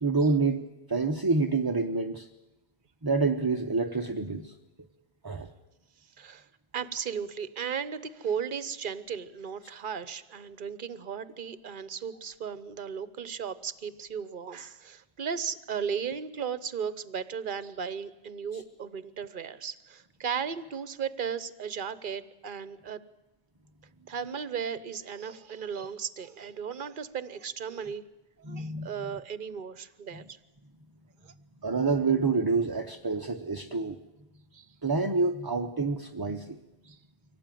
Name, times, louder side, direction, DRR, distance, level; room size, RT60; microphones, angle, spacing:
voice 1, 0.0-2.3 3.0-4.5 5.2-5.5 18.5-18.6 28.4-28.9 30.1-30.2 31.6-34.0 34.8-36.6, right 4 dB, 20° right, 5 dB, 0.7 m, -27 dB
voice 2, 6.2-6.5 6.7-23.0 24.1-28.0 28.5-30.4 31.2-31.3 34.5-34.7 36.8-37.0, right 7 dB, 45° right, 15 dB, 1.0 m, -36 dB
24.0 x 17.5 x 9.2 m, 1.0 s
omnidirectional pair, 1.3 m